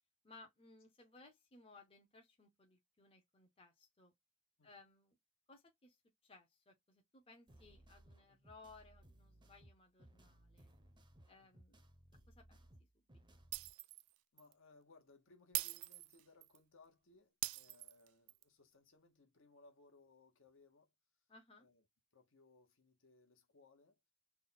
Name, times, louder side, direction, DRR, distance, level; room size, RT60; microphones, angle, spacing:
voice 1, 0.2-4.1 4.6-5.2 5.5-6.0 6.2-10.7 11.3-11.8 12.3-13.4 21.3-21.7, left 3 dB, 25° left, 0.8 m, -62 dB
sound 1, 7.5-13.7, right 1 dB, 20° right, 0.7 m, -64 dB
Shatter, 13.5-14.1 14.4-14.5 15.5-16.6 17.4-18.4, right 18 dB, 85° right, 0.3 m, -42 dB
voice 2, 14.3-20.9 21.6-21.8 22.1-24.0, left 3 dB, 60° left, 1.1 m, -66 dB
3.6 x 2.2 x 4.0 m
head